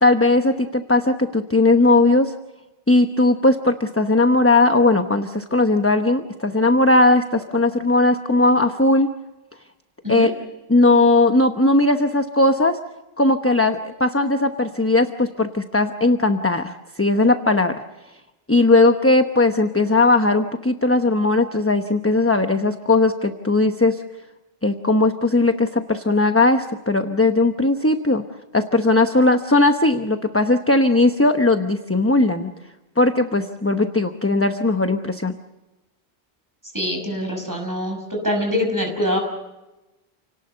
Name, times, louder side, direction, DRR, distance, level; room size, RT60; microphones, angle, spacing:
voice 1, 0.0-2.3 2.9-9.1 10.1-10.3 10.7-12.8 13.2-17.7 18.5-24.0 24.6-28.2 28.5-32.5 33.0-35.4, left 2 dB, 15° left, 7 dB, 0.9 m, -18 dB
voice 2, 36.7-39.2, left 1 dB, 20° right, 3 dB, 6.0 m, -24 dB
29.5 x 18.5 x 6.9 m, 1.0 s
omnidirectional pair, 1.0 m